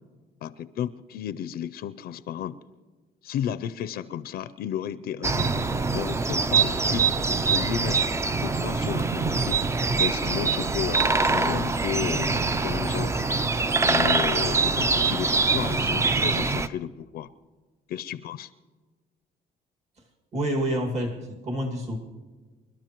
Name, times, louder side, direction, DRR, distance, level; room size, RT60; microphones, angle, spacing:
voice 1, 0.4-2.6 3.2-7.1 7.5-8.1 8.4-9.6 10.0-13.1 13.9-17.3 17.9-18.5, left 10 dB, 65° left, 14 dB, 0.5 m, -33 dB
sound 1, 5.2-16.7, right 4 dB, 15° right, 0.4 m, -24 dB
voice 2, 20.3-22.0, right 1 dB, 40° right, 0 dB, 2.2 m, -28 dB
26.5 x 12.5 x 3.0 m, 1.4 s
cardioid pair, 110°, 17 cm